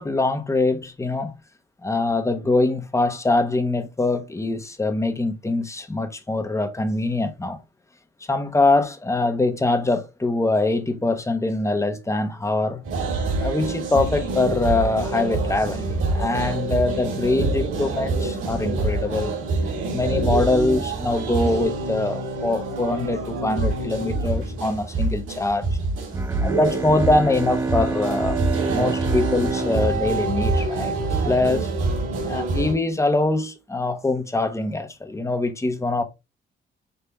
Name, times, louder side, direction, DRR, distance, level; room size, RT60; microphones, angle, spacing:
voice 1, 0.0-1.3 1.8-7.6 8.3-12.8 13.4-19.3 19.9-25.7 26.4-28.4 28.7-31.7 32.3-36.0, left 2 dB, 15° left, 0.9 m, -23 dB
sound 1, 12.8-32.7, right 3 dB, 85° right, 1.9 m, -26 dB
Bowed string instrument, 26.1-31.1, right 3 dB, 15° right, 0.5 m, -29 dB
5.4 x 2.8 x 3.4 m
cardioid pair, 90°, 20 cm